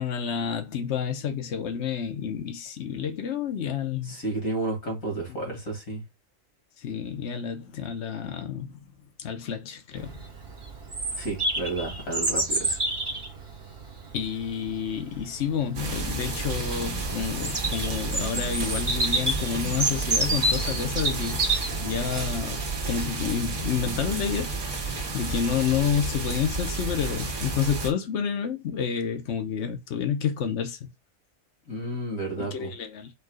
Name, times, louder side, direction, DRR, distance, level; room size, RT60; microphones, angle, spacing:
voice 1, 0.0-4.2 5.3-5.4 6.8-8.9 9.2-10.2 14.1-24.5 24.8-30.9 32.4-33.1, left 7 dB, 60° left, 1.1 m, -29 dB
voice 2, 4.1-6.0 11.1-12.8 31.7-32.7, right 2 dB, 85° left, 2.4 m, -31 dB
Bird vocalization bird call bird song, 10.0-22.7, right 2 dB, 25° right, 1.2 m, -30 dB
sound 1, 15.7-27.9, right 3 dB, 65° right, 1.4 m, -31 dB
4.7 x 2.3 x 4.7 m
omnidirectional pair, 1.4 m